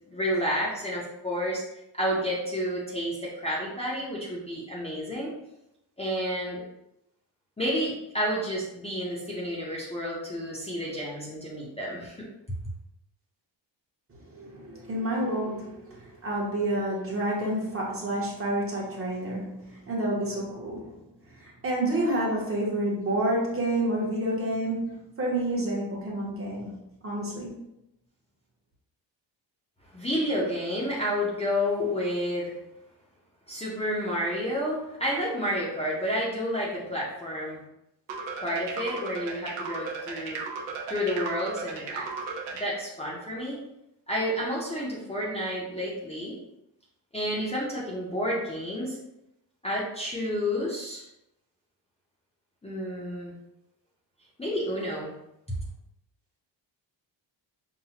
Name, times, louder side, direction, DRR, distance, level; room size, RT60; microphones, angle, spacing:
voice 1, 0.1-1.6 1.9-5.3 6.0-6.6 7.6-12.6 29.9-32.5 33.5-37.6 38.4-40.4 40.9-42.1 42.6-43.6 44.1-46.4 47.1-49.0 49.6-51.1 52.6-53.3 54.4-55.1, equal, 15° left, -7 dB, 0.6 m, -30 dB
voice 2, 14.1-20.9 21.4-27.6, right 1 dB, 30° right, -3 dB, 0.9 m, -29 dB
sound 1, 38.1-42.7, right 4 dB, 85° right, 0.8 m, -35 dB
5.6 x 2.1 x 2.8 m, 0.85 s
wide cardioid pair, 175°, 44 cm